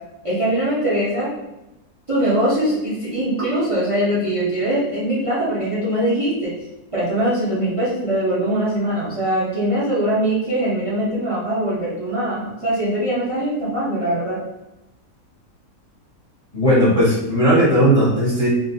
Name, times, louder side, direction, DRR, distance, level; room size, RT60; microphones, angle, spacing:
voice 1, 0.2-1.3 2.1-6.5 6.9-14.4, right 1 dB, 30° right, -8 dB, 0.6 m, -22 dB
voice 2, 16.5-18.5, equal, 25° left, -9 dB, 0.9 m, -16 dB
3.8 x 2.4 x 2.8 m, 0.93 s
omnidirectional pair, 1.7 m